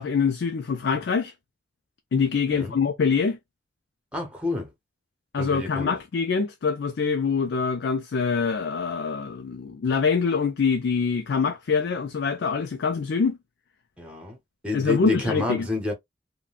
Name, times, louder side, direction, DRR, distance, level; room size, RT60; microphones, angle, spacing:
voice 1, 0.0-1.3 2.1-3.4 5.3-13.4 14.7-15.7, left 5 dB, 85° left, 0.4 m, -24 dB
voice 2, 4.1-4.7 5.4-5.9 14.0-14.4 14.6-15.9, left 3 dB, 5° right, 0.9 m, -29 dB
3.6 x 2.2 x 2.4 m
head